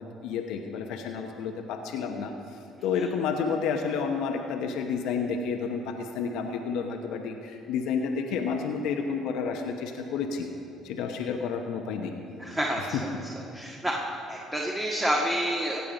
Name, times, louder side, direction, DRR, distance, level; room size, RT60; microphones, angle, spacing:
voice 1, 0.0-2.3 2.8-10.5 10.8-12.1 12.8-13.0, left 6 dB, 75° left, 3 dB, 0.9 m, -30 dB
voice 2, 12.4-13.1 13.5-14.0 14.3-15.8, equal, 10° right, -2 dB, 1.6 m, -28 dB
16.5 x 8.4 x 5.2 m, 2.6 s
supercardioid pair, 70°, 0 cm